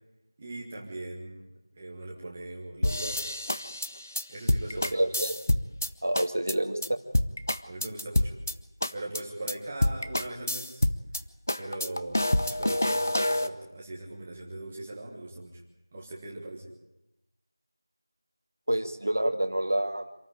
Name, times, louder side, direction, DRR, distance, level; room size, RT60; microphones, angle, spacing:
voice 1, 0.4-3.4 4.3-5.1 7.6-8.3 8.9-10.9 11.6-15.6 15.9-16.7, right 2 dB, 10° right, -2 dB, 1.5 m, -40 dB
sound 1, 2.8-5.9 6.1-6.5 6.8-6.9 7.1-8.5 8.8-9.2 9.5-9.6 9.8-11.2 11.5-13.5, left 1 dB, 35° left, 0.8 m, -27 dB
voice 2, 4.9-5.4 6.0-7.0 18.7-20.1, right 1 dB, 40° right, 5 dB, 1.7 m, -28 dB
26.5 x 14.0 x 9.9 m, 0.94 s
figure-of-eight pair, 180°, 2 cm